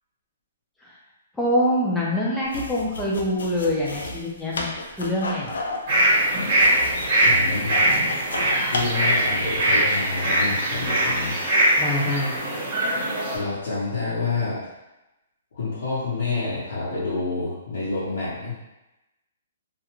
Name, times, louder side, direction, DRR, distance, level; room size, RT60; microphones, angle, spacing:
voice 1, 1.3-5.6 11.8-12.3, left 1 dB, 5° left, -5 dB, 0.5 m, -25 dB
sound 1, 2.4-9.5, left 2 dB, 85° left, 0.4 m, -33 dB
sound 2, 5.9-13.4, right 1 dB, 40° right, 1.0 m, -21 dB
voice 2, 7.2-7.7 8.7-11.8 13.3-14.6 15.5-18.6, left 3 dB, 70° left, -11 dB, 0.9 m, -28 dB
2.4 x 2.2 x 2.9 m, 0.98 s
hypercardioid pair, 160°, 0 cm